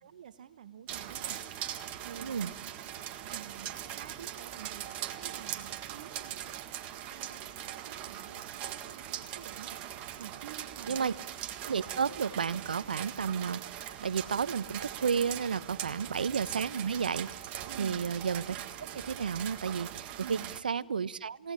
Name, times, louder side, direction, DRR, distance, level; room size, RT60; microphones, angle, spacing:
voice 1, 0.0-1.4 2.0-11.2 15.7-16.0 17.7-18.0 20.2-20.5, right 9 dB, 60° right, 12 dB, 1.1 m, -49 dB
sound 1, 0.9-20.6, right 11 dB, 30° right, 1.7 m, -41 dB
voice 2, 2.2-2.5 10.9-11.1 11.6-17.3 17.8-20.4 20.6-21.5, right 6 dB, 75° right, 18 dB, 0.9 m, -32 dB
29.0 x 17.5 x 10.0 m, 0.96 s
hypercardioid pair, 125°, 5 cm